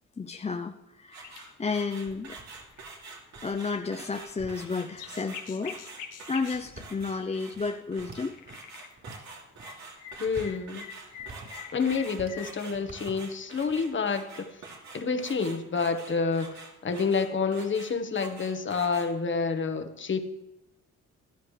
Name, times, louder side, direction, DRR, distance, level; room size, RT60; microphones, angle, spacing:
voice 1, 0.2-2.4 3.4-8.4, left 4 dB, 20° left, 5 dB, 0.6 m, -32 dB
sound 1, 1.1-19.1, right 4 dB, 65° right, 3.0 m, -46 dB
sound 2, 1.2-1.7 2.1-2.2 2.7-2.9 3.6-4.0 4.2-6.7 8.3-8.9 9.2-12.7, left 9 dB, 90° left, 1.6 m, -45 dB
sound 3, 2.0-5.0 5.7-5.8 6.4-8.6 9.0-9.7 10.0-12.4 12.7-14.0, right 3 dB, 45° right, 4.7 m, -49 dB
voice 2, 10.2-10.9 11.7-14.4 14.9-20.2, left 5 dB, 40° left, 7 dB, 1.4 m, -28 dB
15.0 x 12.5 x 3.3 m, 0.94 s
cardioid pair, 90°, 30 cm